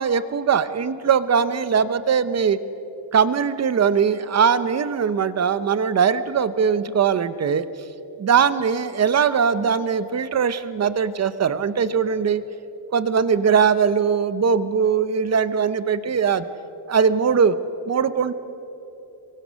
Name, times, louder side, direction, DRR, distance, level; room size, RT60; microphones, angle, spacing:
voice 1, 0.0-2.6 3.1-7.6 8.2-12.4 12.9-16.5 16.9-17.6 17.9-18.3, right 6 dB, 35° right, 13 dB, 0.8 m, -20 dB
29.5 x 23.5 x 6.4 m, 3.0 s
wide cardioid pair, 175°, 47 cm